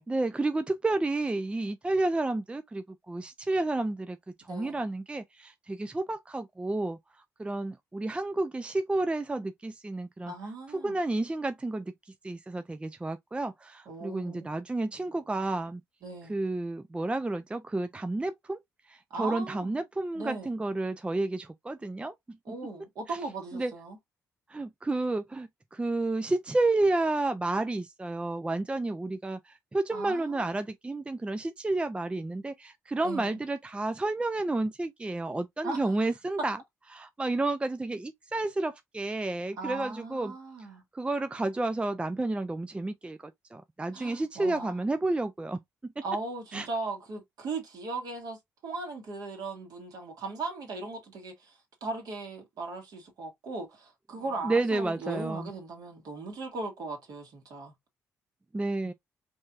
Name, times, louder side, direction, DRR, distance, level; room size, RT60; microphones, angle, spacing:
voice 1, 0.1-7.0 7.4-10.3 10.7-11.9 12.2-15.8 16.3-18.6 18.9-22.6 23.1-23.2 23.5-23.7 24.5-36.6 36.9-40.3 40.9-46.0 46.5-46.7 54.4-55.5 58.5-58.9, right 2 dB, 15° right, 0.4 m, -31 dB
voice 2, 4.5-4.8 10.3-11.0 13.9-14.5 16.0-16.3 19.1-19.7 20.1-20.5 22.5-24.0 29.9-30.5 33.0-33.4 35.6-35.9 39.6-40.8 43.9-44.8 46.0-48.4 48.6-57.7, right 3 dB, 55° right, 1.8 m, -38 dB
5.2 x 3.2 x 2.5 m
figure-of-eight pair, 40°, 8 cm